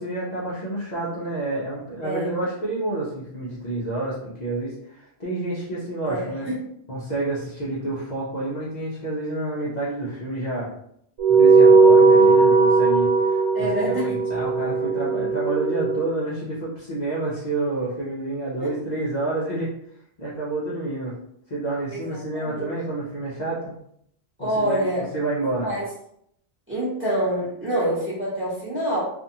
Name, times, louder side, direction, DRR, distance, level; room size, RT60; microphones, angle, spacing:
voice 1, 0.0-6.5 6.9-10.7 11.3-19.7 20.2-21.2 21.5-23.7 24.4-24.9 25.1-25.7, right 2 dB, 45° left, -7 dB, 0.7 m, -29 dB
voice 2, 2.0-2.4 6.0-6.6 13.5-14.2 18.6-18.7 21.9-22.0 22.3-22.7 24.4-25.0 25.6-25.8 26.7-29.0, right 1 dB, 10° right, -8 dB, 1.0 m, -26 dB
sound 1, 11.2-16.0, right 4 dB, 60° right, 0.3 m, -17 dB
2.5 x 2.4 x 2.7 m, 0.72 s
omnidirectional pair, 1.1 m